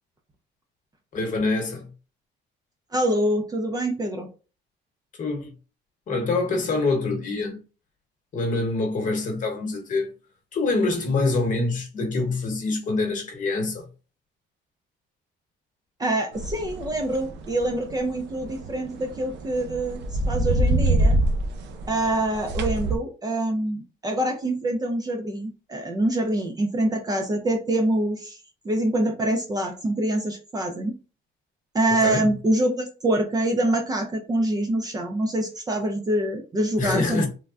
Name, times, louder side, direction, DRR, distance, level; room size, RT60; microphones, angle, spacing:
voice 1, 1.1-1.9 5.2-5.5 6.1-7.6 8.3-10.1 10.5-13.9 31.9-32.3 36.8-37.3, left 3 dB, 45° left, 1.0 m, -25 dB
voice 2, 2.9-4.3 16.0-20.0 20.3-21.2 21.9-28.4 28.6-30.9 31.7-37.3, right 1 dB, 20° right, 0.4 m, -25 dB
sound 1, 16.3-23.0, right 1 dB, 70° right, 0.6 m, -26 dB
3.4 x 2.1 x 2.4 m
cardioid pair, 150°, 19 cm